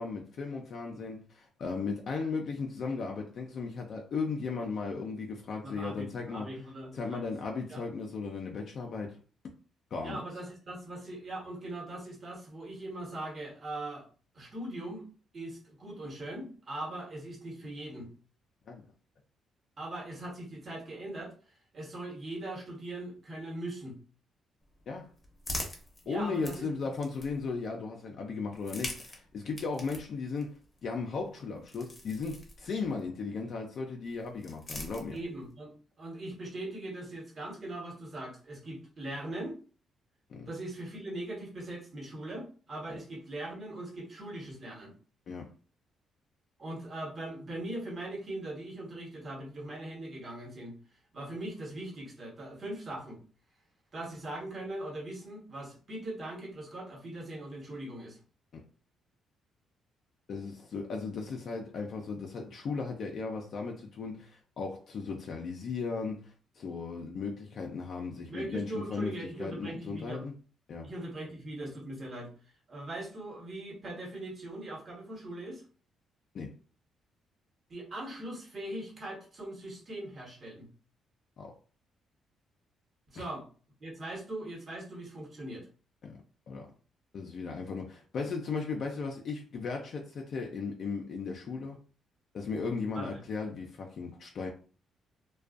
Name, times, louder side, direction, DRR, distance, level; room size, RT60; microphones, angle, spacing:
voice 1, 0.0-6.5 6.9-9.2 9.9-10.2 18.7-18.8 24.9-25.1 26.1-35.2 40.3-40.5 42.9-43.0 45.3-45.5 58.5-58.6 60.3-69.1 69.4-70.3 70.7-70.9 76.3-76.5 81.4-81.5 83.1-83.2 86.0-86.2 86.5-86.7 87.1-91.8 92.3-94.5, left 4 dB, 60° left, 0.4 m, -36 dB
voice 2, 5.6-7.3 7.7-7.8 10.0-14.0 14.3-15.0 15.3-18.1 19.8-21.3 21.7-24.0 26.0-26.7 35.1-39.6 40.5-44.9 46.6-50.8 51.1-53.2 53.9-58.2 68.3-70.3 70.8-72.3 72.7-75.6 77.7-80.7 83.1-83.5 83.8-85.7 92.9-93.2, right 1 dB, 45° right, 1.1 m, -40 dB
sound 1, 24.6-27.7 28.5-33.1 34.0-35.5, left 1 dB, 25° left, 0.8 m, -44 dB
2.4 x 2.2 x 2.4 m
cardioid pair, 90°, 0 cm